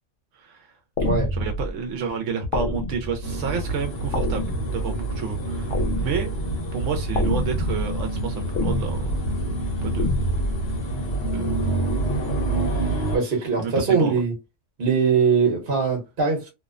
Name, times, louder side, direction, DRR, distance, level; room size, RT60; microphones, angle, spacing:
voice 1, 0.3-0.7 1.3-6.3 6.7-9.5 9.8-10.1 11.3-11.6 12.5-13.2 13.6-14.2, right 5 dB, 80° right, 0.9 m, -30 dB
sound 1, 1.0-1.7 2.5-3.3 4.1-5.0 5.7-6.5 7.1-7.9 8.5-9.2 10.0-10.6, left 1 dB, 80° left, 0.9 m, -26 dB
voice 2, 1.0-1.3 13.1-14.3 14.8-16.5, right 5 dB, 50° right, 1.0 m, -21 dB
sound 2, 3.2-13.2, right 2 dB, 60° left, 1.1 m, -27 dB
2.7 x 2.0 x 2.3 m
omnidirectional pair, 1.3 m